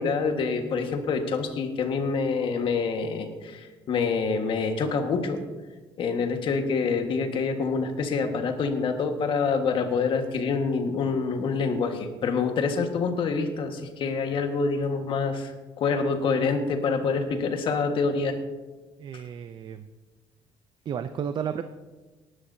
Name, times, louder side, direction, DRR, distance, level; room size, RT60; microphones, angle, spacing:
voice 1, 0.0-5.4 6.0-15.5 15.8-18.4 19.1-19.2, left 4 dB, 60° left, 5 dB, 1.6 m, -26 dB
voice 2, 19.0-19.9 20.9-21.6, right 8 dB, 50° right, 10 dB, 0.5 m, -32 dB
18.5 x 11.0 x 2.8 m, 1.3 s
cardioid pair, 105°, 10 cm